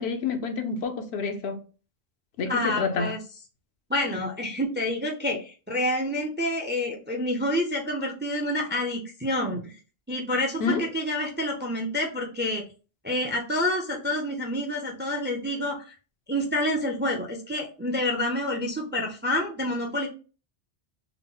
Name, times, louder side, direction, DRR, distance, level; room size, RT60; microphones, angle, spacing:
voice 1, 0.0-1.6 2.4-3.1 10.6-10.9, left 5 dB, 70° left, 0.9 m, -28 dB
voice 2, 2.5-3.2 3.9-9.8 10.1-12.6 13.0-15.9 16.3-20.1, left 1 dB, 15° right, 0.4 m, -28 dB
3.6 x 2.0 x 3.7 m
omnidirectional pair, 1.1 m